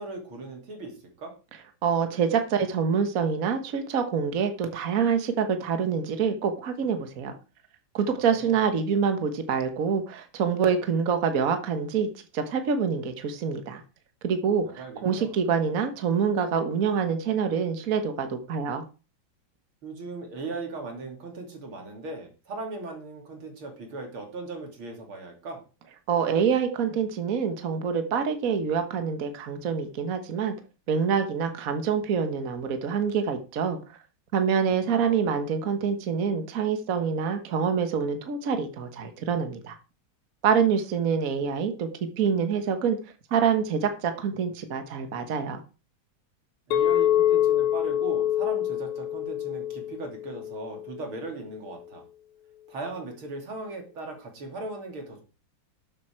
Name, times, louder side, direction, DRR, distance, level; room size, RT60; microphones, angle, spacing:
voice 1, 0.0-1.3 8.1-8.6 14.6-15.4 19.8-25.6 34.9-35.2 46.7-52.0 52.7-55.2, right 2 dB, 90° right, 2 dB, 3.6 m, -38 dB
voice 2, 1.8-7.3 7.9-12.1 12.3-13.8 14.2-18.8 26.1-30.5 30.9-33.8 34.3-39.8 40.4-41.9 42.2-43.0 43.3-45.6, right 6 dB, 45° right, 7 dB, 1.6 m, -26 dB
Chink clink, 46.7-51.0, left 11 dB, 85° left, 1.8 m, -25 dB
12.0 x 7.7 x 4.5 m, 0.33 s
omnidirectional pair, 2.2 m